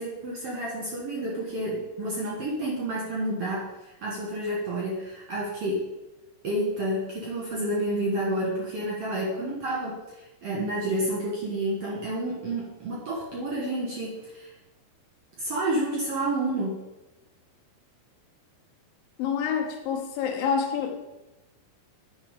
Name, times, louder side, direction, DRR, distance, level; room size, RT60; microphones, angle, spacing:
voice 1, 0.0-5.9 6.4-14.5 15.4-16.8, right 1 dB, 60° right, -4 dB, 1.7 m, -30 dB
voice 2, 19.2-21.0, left 6 dB, 75° left, 3 dB, 2.6 m, -27 dB
10.0 x 4.0 x 5.2 m, 1.0 s
omnidirectional pair, 4.4 m